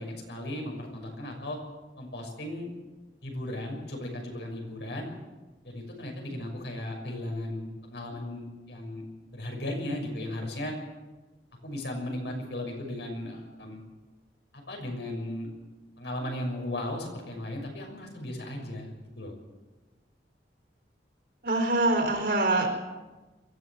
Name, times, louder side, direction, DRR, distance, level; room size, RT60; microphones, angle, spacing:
voice 1, 0.0-1.6 2.0-2.7 3.2-5.1 5.6-9.1 9.3-10.8 11.6-13.8 14.5-15.5 16.0-18.9 19.2-19.3, left 1 dB, 75° left, 1 dB, 6.4 m, -36 dB
voice 2, 21.4-22.7, right 2 dB, 55° right, 3 dB, 4.4 m, -24 dB
23.0 x 15.0 x 7.6 m, 1.2 s
head